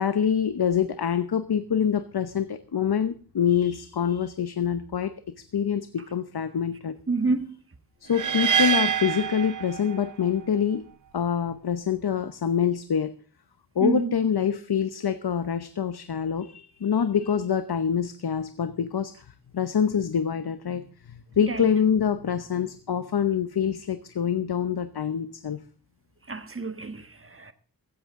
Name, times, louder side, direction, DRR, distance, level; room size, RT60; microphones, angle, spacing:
voice 1, 0.0-7.0 8.0-10.8 11.1-13.1 13.7-25.6, left 7 dB, 75° left, 0.9 m, -26 dB
voice 2, 7.1-7.6 13.8-14.1 21.5-21.7 26.3-27.5, right 3 dB, 35° right, 1.5 m, -28 dB
sound 1, 8.1-10.3, right 7 dB, 50° right, 0.6 m, -25 dB
16.0 x 14.0 x 3.7 m
wide cardioid pair, 95°, 38 cm